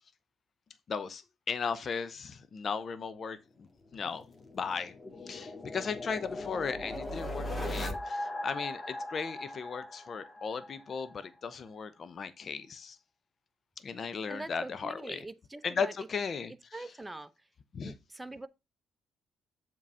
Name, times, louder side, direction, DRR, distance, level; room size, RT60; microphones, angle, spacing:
voice 1, 0.9-4.3 4.5-4.9 5.3-13.0 13.8-15.2 15.6-16.8 17.7-17.9, left 5 dB, 50° left, 0.8 m, -36 dB
sound 1, 3.9-10.7, left 1 dB, 30° left, 1.7 m, -39 dB
voice 2, 14.3-15.9 16.7-17.3 17.8-18.5, right 2 dB, 15° right, 0.8 m, -43 dB
7.3 x 3.9 x 5.5 m
hypercardioid pair, 55°, 0 cm